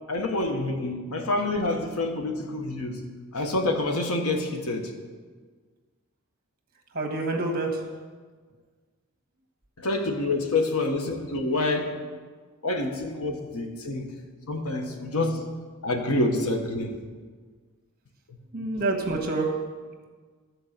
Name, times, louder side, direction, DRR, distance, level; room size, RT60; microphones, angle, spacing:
voice 1, 0.1-4.9 9.8-11.9 12.6-14.2 14.5-15.4 15.8-17.0 18.3-18.7, left 2 dB, 90° left, 3 dB, 1.3 m, -27 dB
voice 2, 6.9-7.8 18.5-19.5, right 2 dB, 45° right, 2 dB, 1.5 m, -27 dB
13.0 x 4.7 x 6.6 m, 1.5 s
head